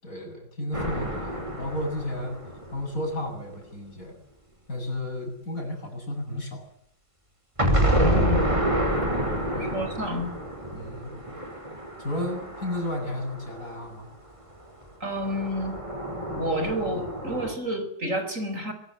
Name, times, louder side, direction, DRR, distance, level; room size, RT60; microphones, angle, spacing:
voice 1, 0.0-2.4 2.7-4.2 4.7-6.6 9.5-9.8 10.7-11.1 12.0-14.1, left 1 dB, 50° left, 4 dB, 8.3 m, -33 dB
sound 1, 0.7-3.5 7.6-13.8 15.1-17.5, equal, 15° right, 5.6 m, -28 dB
voice 2, 7.9-8.5 9.6-10.3 15.0-15.8 16.3-18.7, equal, 45° right, 8 dB, 5.2 m, -29 dB
24.0 x 23.0 x 7.7 m, 0.68 s
omnidirectional pair, 1.9 m